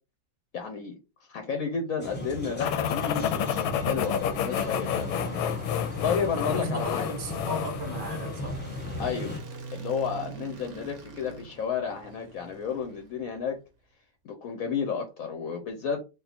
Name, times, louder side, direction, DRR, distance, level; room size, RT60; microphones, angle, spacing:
voice 1, 0.5-0.9 1.3-5.1 6.0-7.1 9.0-9.3 9.7-13.6 14.2-16.0, left 6 dB, 65° left, 0.8 m, -32 dB
sound 1, 2.0-9.4, left 1 dB, 10° left, 0.8 m, -36 dB
sound 2, 2.6-8.4, left 9 dB, 85° left, 1.4 m, -30 dB
sound 3, 5.5-13.5, right 5 dB, 55° right, 0.8 m, -45 dB
voice 2, 6.5-8.5, right 1 dB, 30° right, 0.4 m, -35 dB
3.6 x 2.4 x 4.1 m
omnidirectional pair, 2.1 m